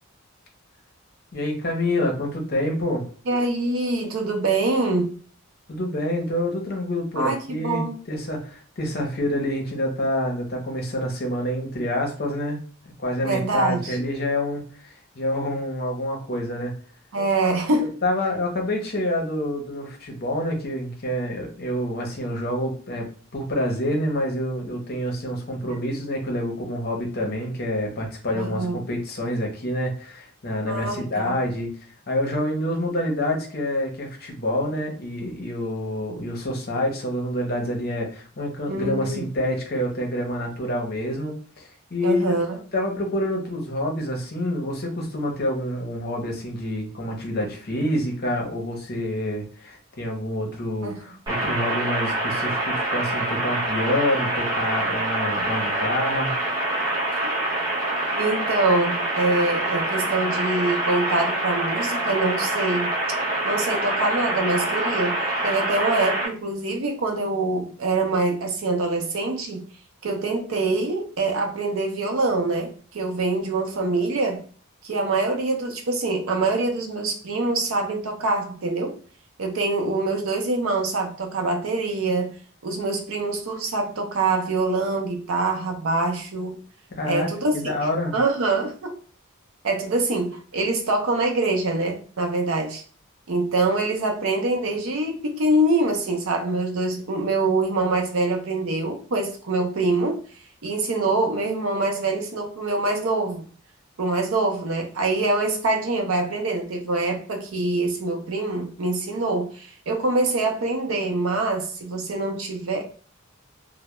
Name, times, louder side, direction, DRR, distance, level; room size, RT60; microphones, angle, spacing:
voice 1, 1.3-3.0 5.7-12.6 13.0-16.7 18.0-31.7 32.1-42.3 42.7-56.3 87.0-87.3 87.5-88.1, left 1 dB, 45° left, 0.6 m, -27 dB
voice 2, 3.3-5.1 7.2-8.0 13.2-14.0 17.1-18.0 28.3-28.8 30.7-31.4 38.7-39.3 42.0-42.6 50.8-51.1 56.7-57.2 58.2-62.9 63.4-69.7 70.0-74.4 74.8-79.0 79.4-82.4 82.6-86.6 87.0-87.5 88.1-89.0 89.6-92.8 93.3-100.2 100.6-103.5 104.0-112.8, right 2 dB, 70° right, 0.5 m, -24 dB
sound 1, 51.3-66.3, right 2 dB, 15° right, 0.6 m, -25 dB
2.2 x 2.0 x 2.9 m
head